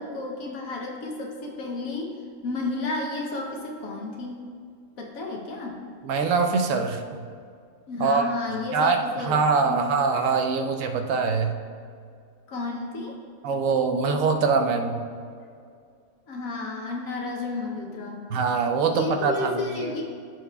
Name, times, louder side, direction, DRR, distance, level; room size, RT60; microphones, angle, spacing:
voice 1, 0.0-4.4 5.0-5.8 7.9-9.4 9.7-9.8 12.5-13.2 16.3-18.3 18.9-20.0, left 3 dB, 70° left, 0 dB, 1.2 m, -32 dB
voice 2, 6.0-7.0 8.0-8.2 8.7-9.0 9.2-11.5 13.4-15.0 18.3-19.9, right 5 dB, 70° right, 6 dB, 1.0 m, -23 dB
14.0 x 4.7 x 2.3 m, 2.2 s
omnidirectional pair, 1.5 m